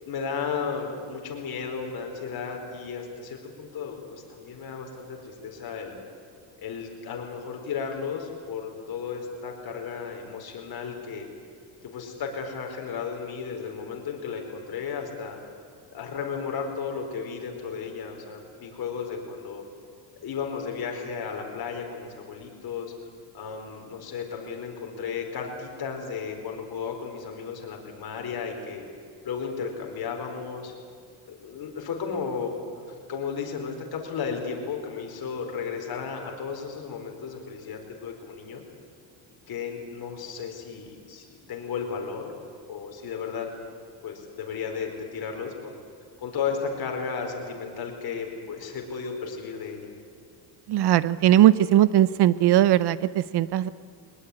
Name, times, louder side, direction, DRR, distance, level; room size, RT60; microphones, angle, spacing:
voice 1, 0.1-6.0 6.6-11.3 11.8-15.4 15.9-19.6 20.2-22.9 23.3-28.8 29.2-30.7 31.2-38.6 39.5-42.3 42.7-43.5 44.0-45.8 46.2-49.9, left 6 dB, 50° left, 2 dB, 4.7 m, -34 dB
voice 2, 50.7-53.7, right 12 dB, 55° right, 17 dB, 0.8 m, -19 dB
22.5 x 20.0 x 9.9 m, 2.2 s
cardioid pair, 135°, 47 cm